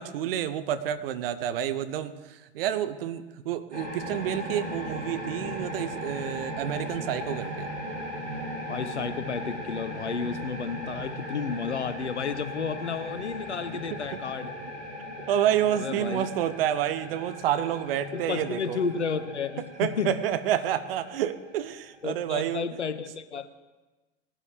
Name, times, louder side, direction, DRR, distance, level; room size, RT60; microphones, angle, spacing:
voice 1, 0.0-7.7 13.9-14.2 15.3-18.8 19.6-22.6, right 10 dB, 55° right, 12 dB, 0.9 m, -29 dB
sound 1, 3.7-22.0, equal, 80° right, 3.2 m, -38 dB
voice 2, 8.7-14.6 15.7-16.3 18.1-20.2 22.0-23.5, left 6 dB, 80° left, 12 dB, 0.9 m, -32 dB
19.5 x 12.5 x 3.5 m, 1.2 s
figure-of-eight pair, 85°, 34 cm